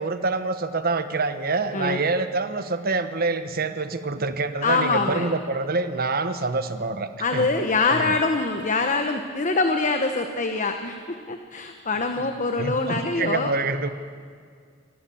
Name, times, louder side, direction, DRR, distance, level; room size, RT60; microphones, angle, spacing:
voice 1, 0.0-7.5 7.9-8.1 12.6-13.9, right 3 dB, 50° right, 10 dB, 1.2 m, -26 dB
voice 2, 4.6-5.3 7.2-13.5, left 3 dB, 40° left, 5 dB, 1.2 m, -24 dB
26.0 x 18.0 x 7.1 m, 2.1 s
head